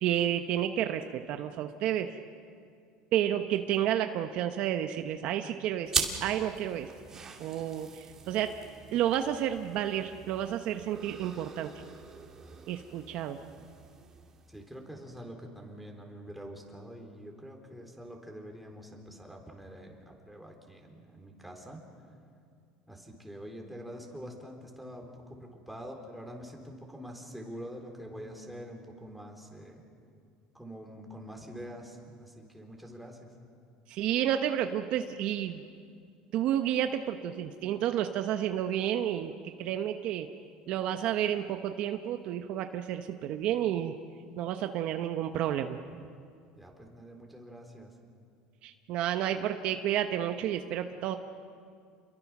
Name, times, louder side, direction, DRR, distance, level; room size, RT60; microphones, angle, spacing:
voice 1, 0.0-2.2 3.1-5.9 6.2-6.9 7.4-8.6 8.9-11.7 12.7-13.4 33.9-35.6 36.3-39.3 39.6-40.3 40.7-44.0 44.4-45.8 48.6-51.2, right 11 dB, 55° right, 7 dB, 1.0 m, -30 dB
sound 1, 5.9-14.8, right 5 dB, 25° right, 2.5 m, -40 dB
voice 2, 14.5-21.8 22.9-29.8 30.5-33.3 46.6-47.9, equal, ahead, 1 dB, 3.7 m, -45 dB
29.0 x 22.5 x 6.1 m, 2.3 s
cardioid pair, 135°, 2 cm